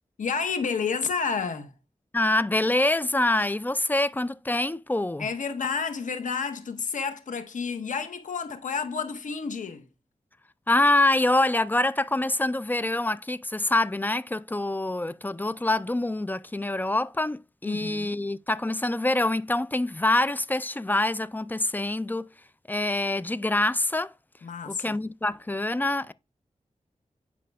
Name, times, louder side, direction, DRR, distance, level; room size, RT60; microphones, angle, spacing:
voice 1, 0.2-1.7 5.2-9.9 17.6-18.1 24.4-25.0, left 5 dB, 90° left, 0.9 m, -30 dB
voice 2, 2.1-5.3 10.7-22.3 22.7-24.1 24.7-26.1, left 2 dB, 15° left, 0.4 m, -25 dB
11.0 x 5.1 x 2.3 m
wide cardioid pair, 60°, 13 cm